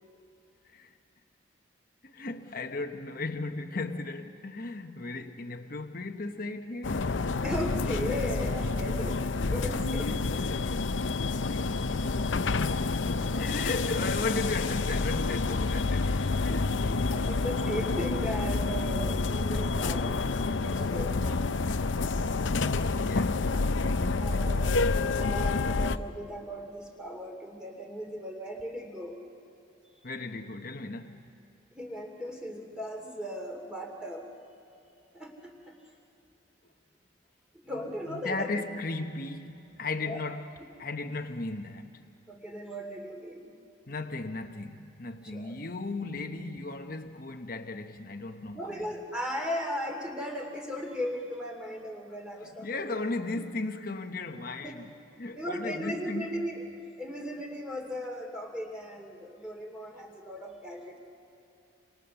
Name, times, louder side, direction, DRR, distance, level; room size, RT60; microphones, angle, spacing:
voice 1, 2.0-7.2 13.2-17.5 23.0-23.7 24.4-24.7 30.0-31.3 38.1-40.5 40.8-42.0 43.9-48.9 52.6-56.6, left 3 dB, 45° left, 1.0 m, -36 dB
sound 1, 6.8-26.0, left 3 dB, 70° left, 0.7 m, -28 dB
voice 2, 7.4-10.7 13.1-13.6 17.1-21.6 24.2-29.2 31.7-34.3 35.1-35.7 37.5-38.6 40.1-40.2 42.3-43.5 45.3-45.6 48.5-53.0 54.6-54.8 55.4-56.6 57.0-61.0, equal, 5° right, 2.6 m, -37 dB
27.5 x 26.5 x 6.9 m
head